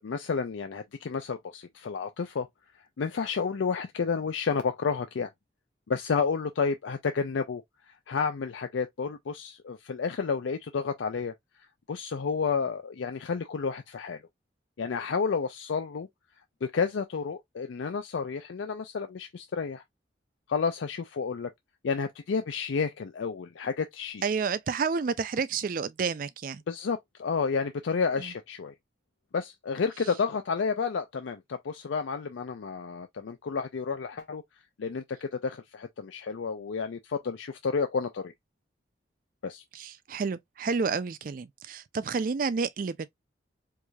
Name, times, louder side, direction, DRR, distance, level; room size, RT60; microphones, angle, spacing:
voice 1, 0.0-2.5 3.0-5.3 5.9-7.6 8.1-11.3 11.9-14.2 14.8-16.1 16.6-19.8 20.5-21.5 21.8-24.2 26.7-28.7 29.3-34.4 34.8-38.3 39.4-39.6, left 5 dB, 90° left, 0.4 m, -31 dB
voice 2, 24.2-26.6 28.2-28.3 39.7-43.1, right 5 dB, 45° right, 0.4 m, -30 dB
4.7 x 2.7 x 2.3 m
head